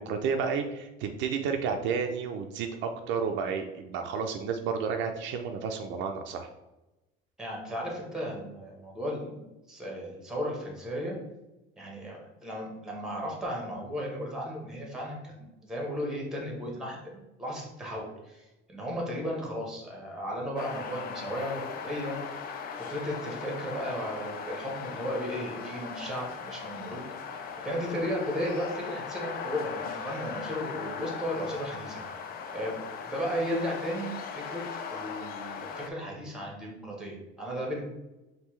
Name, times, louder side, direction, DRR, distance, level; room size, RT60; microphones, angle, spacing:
voice 1, 0.0-6.5, right 6 dB, 60° right, 5 dB, 0.4 m, -31 dB
voice 2, 7.4-11.2 11.8-22.2 22.8-27.0 27.6-32.0 32.5-34.6 34.9-37.8, equal, 5° right, -1 dB, 1.0 m, -35 dB
sound 1, 20.6-35.9, left 6 dB, 45° left, 0.4 m, -39 dB
5.4 x 2.7 x 3.1 m, 0.99 s
cardioid pair, 165°, 21 cm